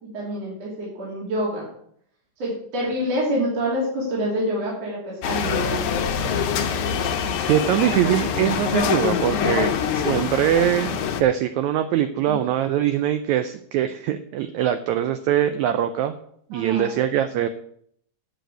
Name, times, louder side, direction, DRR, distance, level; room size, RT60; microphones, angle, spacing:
voice 1, 0.0-1.7 2.4-6.4 12.3-12.4 16.5-16.9, equal, 50° right, -4 dB, 3.9 m, -27 dB
sound 1, 5.2-11.2, left 7 dB, 70° left, 2.3 m, -24 dB
voice 2, 7.5-16.2 16.5-17.5, right 11 dB, 80° right, 10 dB, 1.7 m, -22 dB
9.2 x 6.7 x 8.0 m, 0.67 s
omnidirectional pair, 3.8 m